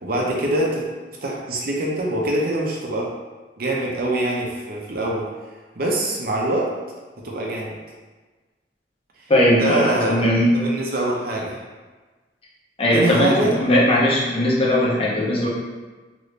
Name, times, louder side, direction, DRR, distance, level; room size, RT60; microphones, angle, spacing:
voice 1, 0.0-0.9 1.2-3.1 3.6-5.3 5.8-6.7 7.2-7.8 9.5-10.1 10.5-11.6 12.9-13.5, right 1 dB, 55° right, -2 dB, 0.6 m, -24 dB
voice 2, 9.3-10.5 12.8-15.5, left 1 dB, 35° left, -5 dB, 0.7 m, -18 dB
3.0 x 2.6 x 3.2 m, 1.3 s
head